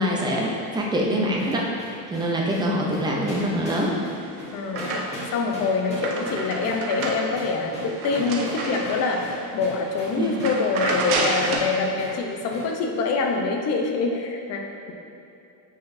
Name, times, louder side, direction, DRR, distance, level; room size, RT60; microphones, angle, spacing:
voice 1, 0.0-1.7 2.1-4.0 10.2-10.4, equal, 10° right, -2 dB, 0.4 m, -24 dB
sound 1, 1.4-10.6 10.9-11.1 11.4-11.6 12.0-12.2 12.5-12.7, equal, 15° left, 1.3 m, -38 dB
sound 2, 3.9-5.4 5.7-9.4 9.8-10.0 10.3-11.8, right 3 dB, 85° right, 1.0 m, -30 dB
voice 2, 4.5-14.9, left 4 dB, 35° left, 2 dB, 0.7 m, -25 dB
9.1 x 4.0 x 2.6 m, 2.7 s
supercardioid pair, 145°, 42 cm